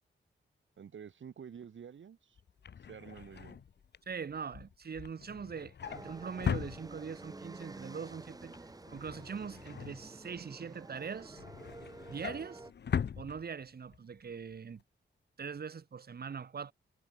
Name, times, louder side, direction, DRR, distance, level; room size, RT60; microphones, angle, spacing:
voice 1, 0.8-2.4 2.8-3.6, right 7 dB, 70° right, 6.9 m, -49 dB
Drawer open or close, 2.4-7.4 7.8-8.1 8.4-10.6 11.0-14.0 14.3-14.5 14.8-14.9, left 7 dB, 60° left, 1.4 m, -40 dB
voice 2, 4.1-8.5 8.9-11.4 12.1-12.7 13.2-14.8 15.4-16.7, right 6 dB, 50° right, 3.9 m, -42 dB
sound 1, 5.8-12.7, right 2 dB, 20° right, 7.2 m, -50 dB
wide cardioid pair, 165°, 20 cm